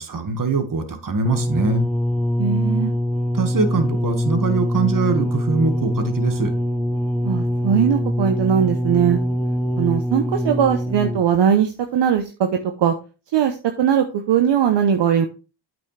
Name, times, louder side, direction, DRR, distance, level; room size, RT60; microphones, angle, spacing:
voice 1, 0.0-1.9 3.3-6.5, right 4 dB, 40° right, 7 dB, 1.8 m, -23 dB
sound 1, 1.2-11.4 12.2-12.3, equal, 5° left, 0.7 m, -23 dB
voice 2, 2.4-2.9 7.2-9.2 9.8-12.5 12.8-12.9 13.3-15.3, right 8 dB, 60° right, 5 dB, 1.0 m, -19 dB
8.4 x 6.2 x 3.4 m, 0.32 s
supercardioid pair, 55°, 47 cm